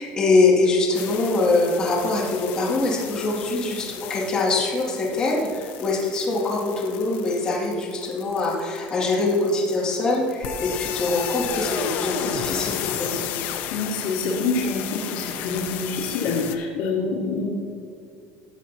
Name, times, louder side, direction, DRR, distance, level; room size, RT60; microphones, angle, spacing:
voice 1, 0.0-13.1, left 3 dB, 20° left, -5 dB, 2.2 m, -23 dB
sound 1, 0.9-16.6, left 10 dB, 50° left, 0.7 m, -34 dB
voice 2, 13.7-17.5, left 4 dB, 65° left, -5 dB, 1.9 m, -26 dB
15.5 x 8.0 x 2.8 m, 2.5 s
cardioid pair, 175°, 4 cm